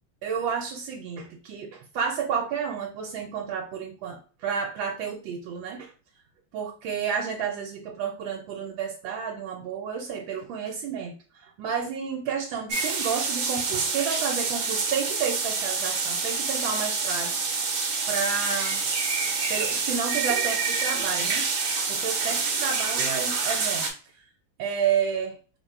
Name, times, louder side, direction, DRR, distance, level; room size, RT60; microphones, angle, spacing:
voice 1, 0.2-5.9 6.5-17.6 18.1-18.8 19.5-21.5 21.9-23.9 24.6-25.4, right 7 dB, 75° right, 0 dB, 1.4 m, -31 dB
sound 1, 12.7-23.9, right 4 dB, 55° right, 1.0 m, -27 dB
3.7 x 2.2 x 4.3 m, 0.38 s
omnidirectional pair, 2.2 m